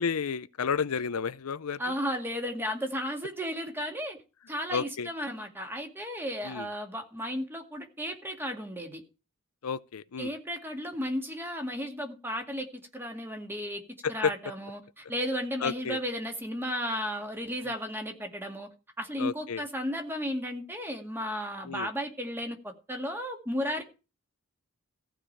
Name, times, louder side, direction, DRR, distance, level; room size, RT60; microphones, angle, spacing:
voice 1, 0.0-1.8 4.7-5.1 6.4-6.7 9.6-10.3 14.0-14.3 15.6-16.0 19.2-19.6 21.6-21.9, left 6 dB, 80° left, 0.6 m, -31 dB
voice 2, 1.8-4.2 4.5-9.0 10.2-12.7 12.9-13.8 14.1-18.7 19.0-23.8, equal, 10° right, 2.1 m, -34 dB
15.0 x 5.0 x 8.8 m
head